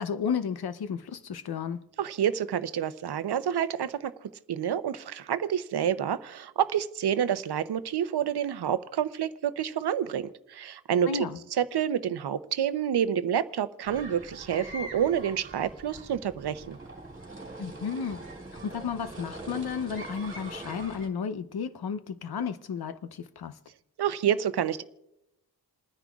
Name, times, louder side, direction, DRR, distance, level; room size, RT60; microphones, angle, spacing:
voice 1, 0.0-1.9 11.0-11.4 17.6-18.2 18.6-23.6, left 6 dB, 70° left, 0.8 m, -33 dB
voice 2, 2.0-11.2 11.6-16.8 24.0-24.8, right 9 dB, 75° right, 0.7 m, -28 dB
sound 1, 13.8-21.1, right 2 dB, 30° right, 2.6 m, -43 dB
28.5 x 9.9 x 2.4 m
wide cardioid pair, 85°, 39 cm